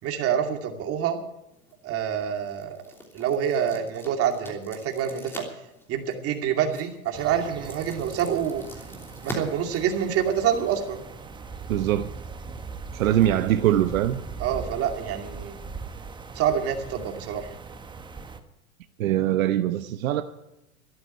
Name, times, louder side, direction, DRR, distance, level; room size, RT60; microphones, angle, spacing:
voice 1, 0.0-1.2 1.8-2.8 3.1-5.4 5.9-8.6 9.2-11.0 14.4-15.6 16.3-17.5, right 8 dB, 35° right, 2.5 m, -26 dB
sound 1, 1.5-10.6, equal, 5° left, 3.1 m, -44 dB
sound 2, 7.1-18.4, right 4 dB, 10° right, 1.1 m, -40 dB
voice 2, 11.7-12.1 12.9-14.2 19.0-20.2, right 12 dB, 70° right, 1.0 m, -22 dB
13.0 x 11.0 x 8.8 m
hypercardioid pair, 125°, 42 cm